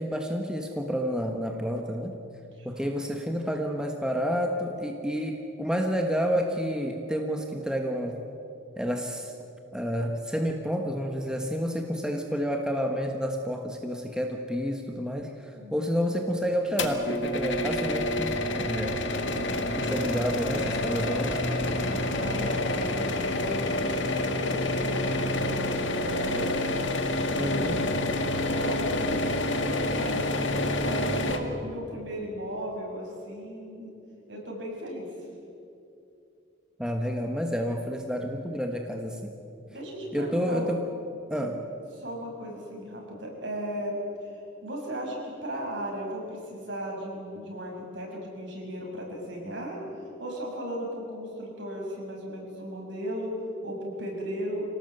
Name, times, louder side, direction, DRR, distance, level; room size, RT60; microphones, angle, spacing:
voice 1, 0.0-2.1 2.6-8.2 8.8-9.3 9.7-19.0 19.8-21.4 27.3-27.8 36.8-39.3 40.1-40.8 41.3-41.6, equal, 5° right, 2 dB, 1.4 m, -29 dB
voice 2, 2.6-3.1 15.5-15.7 21.7-26.5 27.3-28.1 28.5-30.3 30.8-33.9 34.3-35.1 39.7-40.8 41.4-41.6 41.9-49.8 50.2-53.3 53.6-54.6, equal, 65° right, -1 dB, 6.5 m, -36 dB
sound 1, 16.8-31.4, left 1 dB, 65° left, 2.0 m, -28 dB
26.5 x 18.0 x 8.0 m, 2.7 s
head